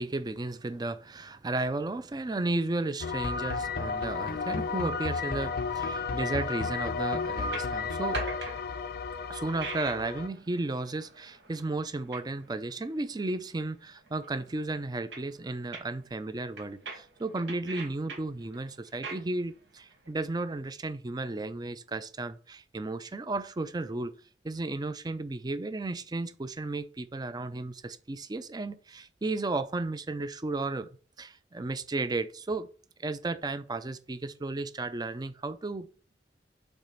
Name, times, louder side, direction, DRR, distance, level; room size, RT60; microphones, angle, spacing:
voice 1, 0.0-8.3 9.3-24.1 24.4-30.9 31.2-32.7 33.0-35.9, right 2 dB, 25° right, 0.5 m, -34 dB
sound 1, 3.0-10.3, left 4 dB, 60° left, 0.5 m, -32 dB
sound 2, 5.9-20.1, right 3 dB, 85° right, 1.5 m, -45 dB
5.3 x 4.1 x 5.9 m
head